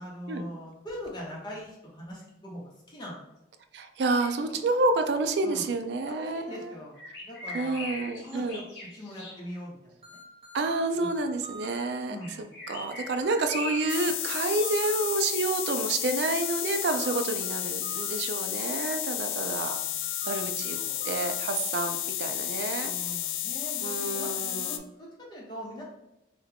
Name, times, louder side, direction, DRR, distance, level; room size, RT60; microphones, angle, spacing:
voice 1, 0.0-3.2 5.4-5.7 6.0-7.0 7.2-7.9 8.2-8.6 8.9-10.2 12.1-12.5 19.8-21.1 22.7-25.8, equal, 25° left, -4 dB, 0.9 m, -42 dB
voice 2, 3.7-6.7 7.5-8.6 10.5-12.2 12.7-19.8 20.3-20.8 21.0-22.9 23.8-24.8, right 2 dB, 65° right, 7 dB, 0.4 m, -29 dB
sound 1, 4.2-4.8 7.0-9.4 12.2-14.0 14.4-15.0, left 2 dB, 55° left, 1.1 m, -40 dB
sound 2, 10.0-11.8 13.2-15.0 16.4-18.2 19.6-21.4, right 3 dB, 35° right, 0.9 m, -45 dB
sound 3, 13.9-24.8, left 12 dB, 85° left, 0.3 m, -32 dB
3.4 x 2.3 x 3.4 m, 0.90 s
head